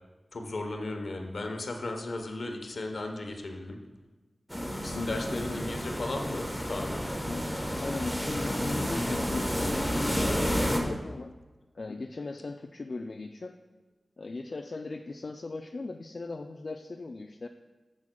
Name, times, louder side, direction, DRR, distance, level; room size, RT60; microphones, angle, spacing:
voice 1, 0.3-3.8 4.8-7.0 7.8-7.9, left 2 dB, 70° left, 4 dB, 0.9 m, -36 dB
sound 1, 4.5-10.8, equal, 5° left, 1.0 m, -30 dB
voice 2, 4.9-5.6 7.3-11.3 11.7-13.6 14.2-17.5, left 3 dB, 55° left, 5 dB, 0.3 m, -38 dB
10.5 x 7.2 x 2.3 m, 1.2 s
wide cardioid pair, 70°, 0 cm